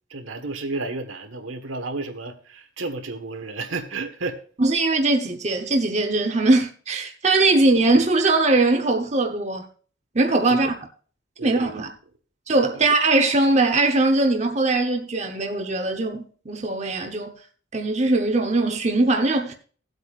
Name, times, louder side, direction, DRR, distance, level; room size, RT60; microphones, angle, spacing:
voice 1, 0.1-4.4 10.5-10.7 11.4-11.8 12.7-12.8, right 3 dB, 80° right, 1.4 m, -32 dB
voice 2, 4.6-9.7 10.1-10.7 11.4-11.9 12.5-17.4 17.7-19.5, right 2 dB, 35° right, 1.0 m, -21 dB
17.0 x 8.1 x 2.5 m
head